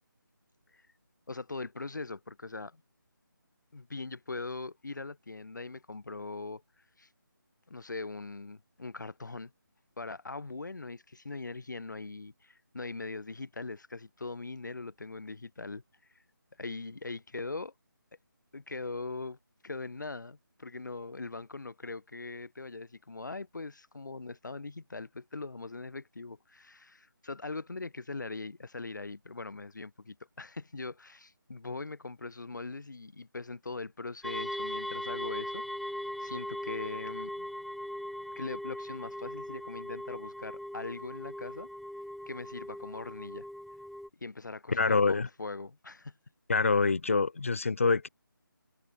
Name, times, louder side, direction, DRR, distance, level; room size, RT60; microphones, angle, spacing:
voice 1, 1.3-2.8 3.7-6.6 7.0-7.1 7.7-9.5 10.0-15.8 16.6-17.7 18.5-19.4 19.6-35.6 36.2-37.5 38.4-41.7 42.3-43.5 44.2-46.1, left 3 dB, 55° left, 3.6 m, -41 dB
sound 1, 34.2-44.1, equal, ahead, 1.1 m, -39 dB
voice 2, 44.7-45.3 46.5-48.1, left 4 dB, 40° left, 0.8 m, -26 dB
figure-of-eight pair, 175°, 12 cm